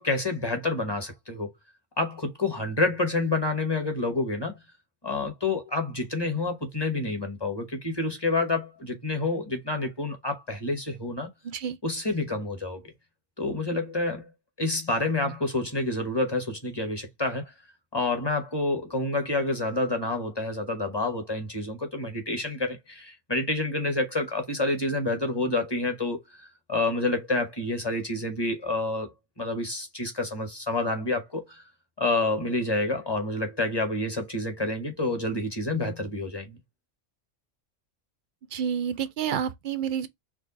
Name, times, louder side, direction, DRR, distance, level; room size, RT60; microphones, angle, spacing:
voice 1, 0.0-1.5 2.0-4.6 5.0-11.3 11.8-12.9 13.4-14.2 14.6-17.4 17.9-26.2 26.7-29.1 29.4-31.6 32.0-36.6, left 2 dB, 20° left, 1.0 m, -28 dB
voice 2, 11.4-11.8 38.5-40.1, right 8 dB, 60° right, 0.5 m, -29 dB
4.7 x 2.2 x 3.9 m
omnidirectional pair, 1.3 m